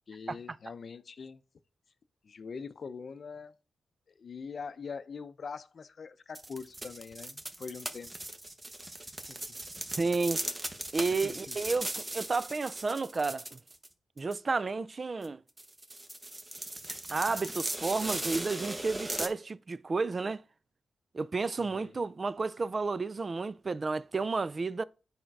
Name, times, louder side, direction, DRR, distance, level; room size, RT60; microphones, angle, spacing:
voice 1, 0.1-1.4 2.2-3.5 4.2-8.1 9.3-9.4 11.2-11.6 21.6-22.0, left 5 dB, 50° left, 0.6 m, -43 dB
sound 1, 6.3-13.9 14.2-14.3 15.2-15.3 15.6-19.3, right 1 dB, 20° right, 0.9 m, -38 dB
voice 2, 10.0-10.4 10.9-13.6 14.2-15.4 16.9-20.4 21.1-24.8, right 4 dB, 35° right, 0.4 m, -31 dB
8.7 x 5.0 x 4.6 m
wide cardioid pair, 110°, 0 cm